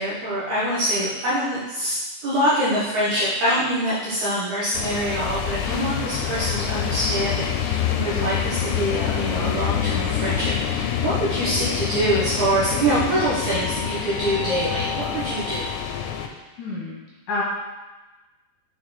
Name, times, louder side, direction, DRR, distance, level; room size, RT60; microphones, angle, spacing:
voice 1, 0.0-15.7, right 1 dB, 65° right, -9 dB, 2.1 m, -24 dB
sound 1, 4.7-16.3, left 9 dB, 85° left, 2.6 m, -26 dB
voice 2, 16.2-17.0 17.3-17.4, left 3 dB, 60° left, -6 dB, 2.8 m, -30 dB
6.7 x 4.5 x 4.2 m, 1.1 s
omnidirectional pair, 4.6 m